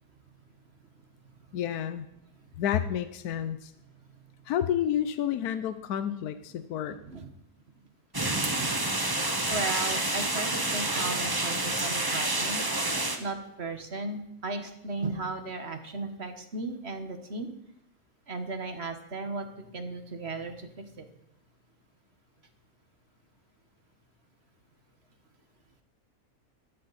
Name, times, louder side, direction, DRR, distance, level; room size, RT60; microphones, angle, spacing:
voice 1, 1.5-2.1 2.6-3.7 4.5-7.0, left 10 dB, 80° left, 11 dB, 1.2 m, -30 dB
voice 2, 6.9-7.3 9.5-12.6 13.2-17.5 18.3-20.7 21.0-21.1, right 3 dB, 45° right, 7 dB, 1.6 m, -36 dB
sound 1, 8.1-13.2, right 2 dB, 15° right, 1.1 m, -28 dB
17.5 x 13.0 x 4.2 m, 0.80 s
omnidirectional pair, 1.6 m